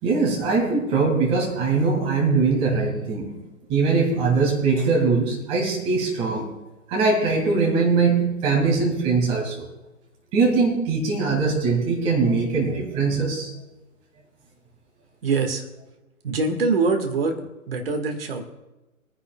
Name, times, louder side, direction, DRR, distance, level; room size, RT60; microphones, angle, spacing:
voice 1, 0.0-3.4 3.7-6.5 6.9-9.7 10.3-13.5, right 4 dB, 15° right, -1 dB, 2.2 m, -21 dB
voice 2, 15.2-15.6 16.2-17.4 17.7-18.4, right 4 dB, 40° right, 5 dB, 1.8 m, -23 dB
23.0 x 10.0 x 2.3 m, 1.1 s
figure-of-eight pair, 140°, 42 cm